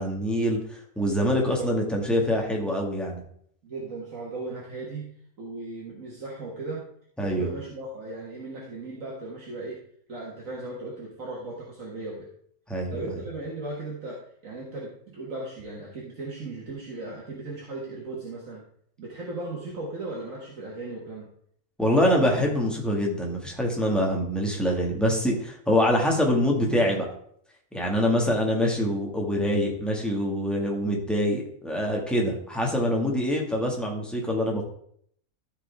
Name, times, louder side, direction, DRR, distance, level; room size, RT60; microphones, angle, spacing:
voice 1, 0.0-3.2 7.2-7.5 12.7-13.0 21.8-27.0 27.7-34.6, equal, ahead, -2 dB, 1.7 m, -25 dB
voice 2, 1.3-1.7 3.6-5.1 5.4-6.8 7.2-9.8 10.1-12.3 12.9-18.6 19.0-21.3 26.5-27.0, right 2 dB, 65° right, -4 dB, 1.9 m, -37 dB
13.5 x 5.0 x 3.5 m, 0.64 s
omnidirectional pair, 1.5 m